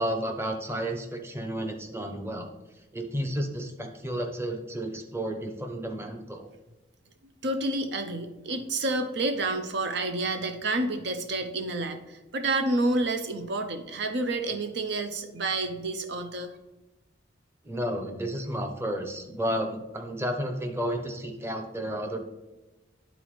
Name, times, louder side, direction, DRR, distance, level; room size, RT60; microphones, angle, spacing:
voice 1, 0.0-2.5 2.9-6.5 17.6-22.2, equal, 15° right, 4 dB, 0.8 m, -32 dB
voice 2, 7.4-16.5, right 2 dB, 65° right, 7 dB, 0.6 m, -29 dB
10.5 x 4.0 x 3.1 m, 1.0 s
head